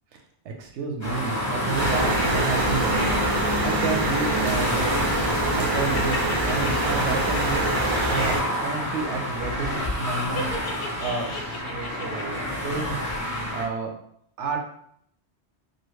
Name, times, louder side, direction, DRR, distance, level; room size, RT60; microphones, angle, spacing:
voice 1, 0.4-5.2 5.5-6.2 6.5-7.7 8.0-8.4 8.6-10.5 11.0-13.0 13.5-13.9 14.4-14.6, right 4 dB, 85° right, 3 dB, 0.9 m, -31 dB
sound 1, 1.0-13.7, equal, 15° left, 0.7 m, -29 dB
sound 2, 1.8-8.4, right 1 dB, 35° right, 0.4 m, -25 dB
sound 3, 3.4-5.0 5.5-9.0 9.2-9.6 10.3-12.8 13.1-13.2, left 3 dB, 65° left, 0.7 m, -38 dB
2.8 x 2.4 x 3.1 m, 0.68 s
omnidirectional pair, 1.1 m